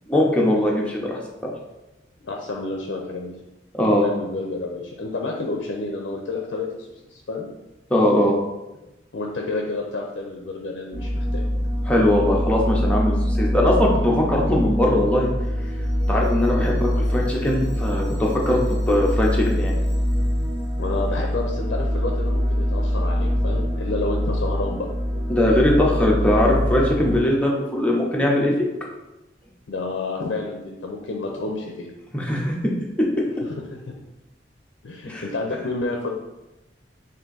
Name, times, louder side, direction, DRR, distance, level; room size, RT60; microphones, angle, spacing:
voice 1, 0.1-1.5 3.7-4.0 7.9-8.3 11.9-15.3 16.1-19.8 25.3-28.5 32.1-32.6 35.1-35.2, left 1 dB, 5° left, -3 dB, 0.6 m, -20 dB
voice 2, 2.2-3.4 3.9-7.5 9.1-11.4 20.8-24.9 29.7-31.9 33.4-34.0 34.8-36.1, left 3 dB, 65° left, 0 dB, 0.5 m, -29 dB
sound 1, 10.9-27.2, equal, 40° right, 1.2 m, -24 dB
3.6 x 2.6 x 3.9 m, 1.0 s
head